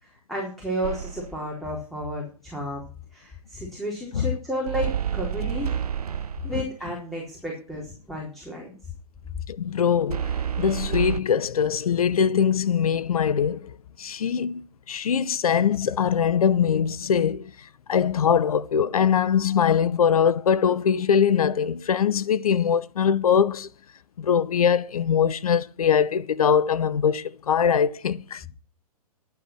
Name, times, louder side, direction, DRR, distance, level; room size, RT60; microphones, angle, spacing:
voice 1, 0.0-2.8 3.1-5.8 6.4-8.7, equal, ahead, 4.1 m, -32 dB
sound 1, 0.8-1.4 4.7-6.7 10.1-11.2, right 8 dB, 75° right, 0.6 m, -29 dB
voice 2, 9.5-17.5 17.9-23.7 24.2-28.4, left 7 dB, 65° left, 0.9 m, -22 dB
12.0 x 8.8 x 6.1 m
figure-of-eight pair, 115°, 20 cm